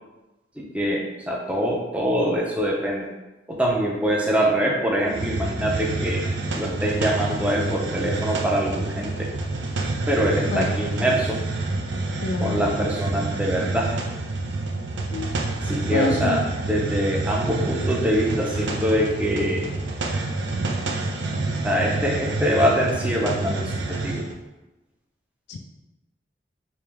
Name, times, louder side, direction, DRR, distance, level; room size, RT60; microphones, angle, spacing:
voice 1, 0.6-3.1 3.5-6.2 6.5-9.3 10.1-11.4 12.4-13.9 15.7-19.7 21.6-24.2, equal, 5° right, -2 dB, 0.5 m, -24 dB
Hiss, 5.1-24.3, right 2 dB, 80° right, 0.5 m, -28 dB
voice 2, 12.2-12.8 15.1-15.3 15.9-16.4 25.5-25.6, left 3 dB, 65° left, 4 dB, 0.3 m, -27 dB
3.2 x 2.9 x 3.5 m, 1.0 s
head